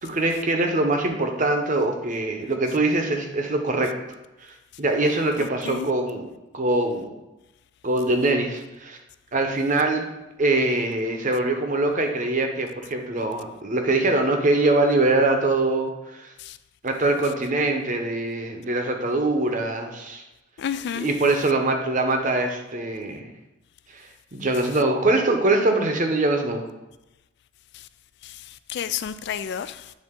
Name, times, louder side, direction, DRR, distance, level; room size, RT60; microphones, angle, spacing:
voice 1, 0.0-3.9 4.8-6.3 6.5-7.1 7.8-9.0 9.3-10.1 10.4-16.3 16.8-20.2 20.9-23.2 23.9-24.0 24.3-26.6, right 2 dB, 40° right, 0.8 m, -23 dB
voice 2, 5.4-5.9 16.4-16.6 20.6-21.1 28.2-28.4 28.7-29.8, left 8 dB, 55° left, 0.3 m, -30 dB
8.6 x 3.6 x 3.7 m
head